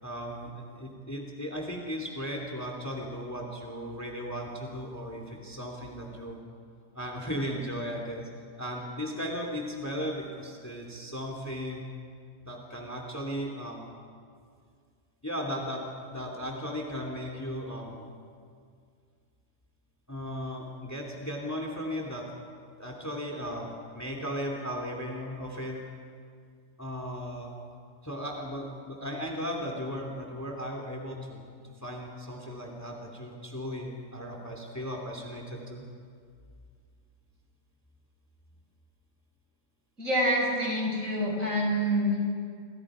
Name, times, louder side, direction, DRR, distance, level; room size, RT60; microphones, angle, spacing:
voice 1, 0.0-6.4 6.9-8.3 8.6-11.8 12.4-13.9 15.2-18.1 20.1-22.3 22.8-25.8 26.8-27.5 28.0-35.9, equal, 10° left, 1 dB, 2.7 m, -36 dB
voice 2, 40.0-42.2, equal, 50° right, -2 dB, 6.7 m, -27 dB
28.0 x 27.5 x 5.0 m, 2.2 s
omnidirectional pair, 1.7 m